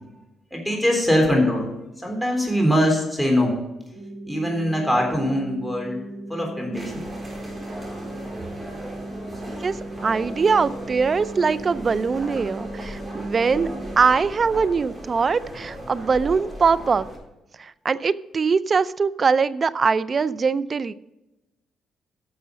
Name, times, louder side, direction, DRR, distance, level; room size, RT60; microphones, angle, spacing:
voice 1, 0.5-3.5 4.2-6.0 6.3-7.0, equal, ahead, 2 dB, 3.6 m, -22 dB
sound 1, 3.9-13.9, right 1 dB, 75° right, 3.2 m, -37 dB
sound 2, 6.7-17.2, right 1 dB, 20° right, 4.4 m, -37 dB
voice 2, 9.6-17.1 17.6-20.9, right 5 dB, 40° right, 17 dB, 0.5 m, -22 dB
11.0 x 6.7 x 5.2 m, 0.99 s
cardioid pair, 90°, 0 cm